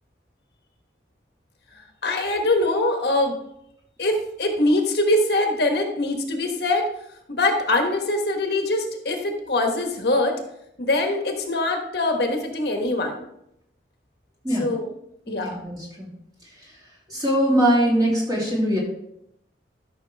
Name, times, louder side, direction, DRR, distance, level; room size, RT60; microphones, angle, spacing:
voice 1, 2.0-3.4 4.0-6.9 7.3-10.4 10.8-13.3 14.6-14.9 15.3-15.6, left 2 dB, 60° left, 3 dB, 1.3 m, -23 dB
voice 2, 15.3-16.1 17.1-18.8, equal, 20° right, -5 dB, 3.1 m, -22 dB
13.0 x 6.3 x 3.4 m, 0.77 s
head